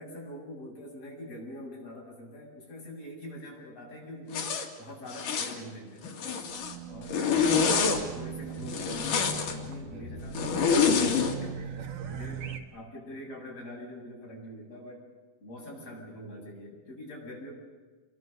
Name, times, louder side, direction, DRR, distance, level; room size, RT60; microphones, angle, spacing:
voice 1, 0.0-6.3 6.9-11.8 12.1-15.1 15.4-17.5, left 1 dB, 45° left, -3 dB, 9.0 m, -44 dB
Zipper (clothing), 4.3-4.7 5.1-5.6 6.0-6.7 7.1-8.0 8.7-9.5 10.3-11.3, left 5 dB, 70° left, 3.8 m, -26 dB
Race car auto racing / Alarm, 6.4-12.6, right 4 dB, 70° right, 3.1 m, -39 dB
29.0 x 24.0 x 6.8 m, 1.3 s
omnidirectional pair, 3.9 m